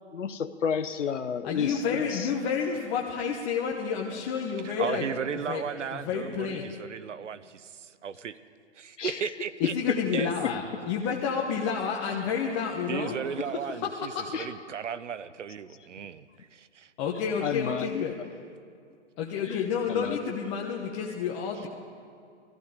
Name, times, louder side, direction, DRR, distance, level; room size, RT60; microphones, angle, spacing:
voice 1, 0.1-2.3 9.0-9.2 9.6-10.5 14.3-14.5 17.4-18.0 19.5-19.6 19.9-20.2, left 7 dB, 90° left, 9 dB, 0.8 m, -31 dB
voice 2, 1.4-5.0 5.3-5.6 5.9-6.7 9.6-14.3 17.0-18.1 19.2-21.7, left 6 dB, 30° left, -2 dB, 1.2 m, -30 dB
voice 3, 4.6-8.4 8.8-9.7 10.1-10.3 12.9-14.1 14.4-16.3 16.5-16.9, right 7 dB, 85° right, 15 dB, 0.8 m, -35 dB
19.5 x 14.5 x 5.0 m, 2.3 s
hypercardioid pair, 140°, 35 cm